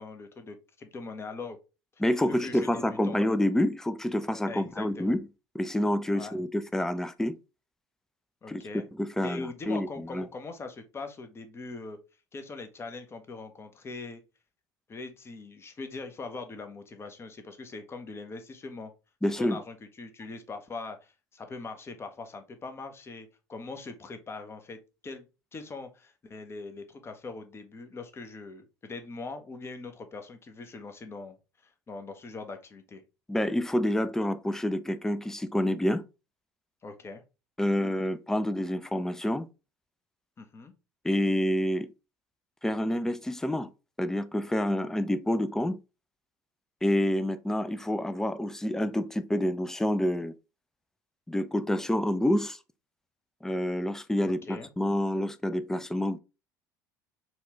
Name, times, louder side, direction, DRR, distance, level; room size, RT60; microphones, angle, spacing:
voice 1, 0.0-1.6 2.2-3.2 4.5-5.1 6.1-6.3 8.4-8.9 9.2-12.0 12.3-14.2 14.9-18.9 19.4-25.3 25.5-31.4 31.6-33.0 36.8-37.2 40.4-40.7 54.2-54.7, left 3 dB, 25° left, 0.7 m, -41 dB
voice 2, 2.0-5.2 5.5-7.4 8.5-8.6 9.0-10.2 19.2-19.6 33.3-36.0 37.6-39.5 41.0-41.9 42.6-43.7 44.0-45.8 46.8-50.3 51.3-52.6 53.4-56.2, left 1 dB, 5° left, 0.3 m, -28 dB
4.2 x 2.3 x 2.8 m
hypercardioid pair, 65°, 10 cm